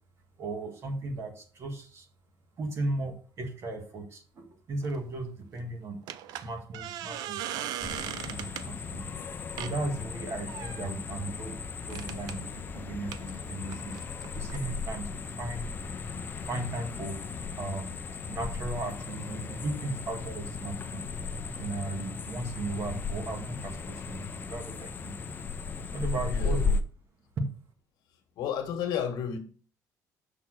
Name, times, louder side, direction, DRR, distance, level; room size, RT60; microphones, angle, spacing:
voice 1, 0.4-2.1 2.6-6.0 6.4-9.0 9.6-11.6 11.8-14.0 14.3-15.1 15.4-15.6 16.5-17.1 17.6-17.9 18.3-21.0 21.5-25.2 25.9-26.7 27.4-27.5, right 2 dB, 40° right, 1.8 m, -36 dB
sound 1, 4.8-5.0 6.1-8.7 9.6-9.8 10.5-10.9 11.9-12.4 13.1-14.6, right 11 dB, 70° right, 0.6 m, -38 dB
sound 2, 7.8-26.8, left 4 dB, 30° left, 0.6 m, -36 dB
voice 2, 26.3-26.6 28.4-29.4, left 8 dB, 70° left, 1.7 m, -32 dB
6.3 x 5.9 x 6.3 m
cardioid pair, 160°, 7 cm